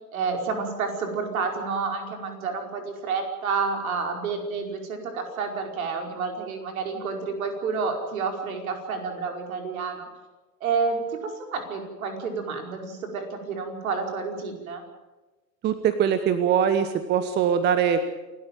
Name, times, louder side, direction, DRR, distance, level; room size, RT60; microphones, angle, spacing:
voice 1, 0.1-10.1 10.6-14.8, right 5 dB, 55° right, 3 dB, 5.0 m, -29 dB
voice 2, 15.6-18.0, right 8 dB, 20° right, 11 dB, 1.1 m, -22 dB
28.0 x 13.0 x 9.2 m, 1.2 s
figure-of-eight pair, 100°, 49 cm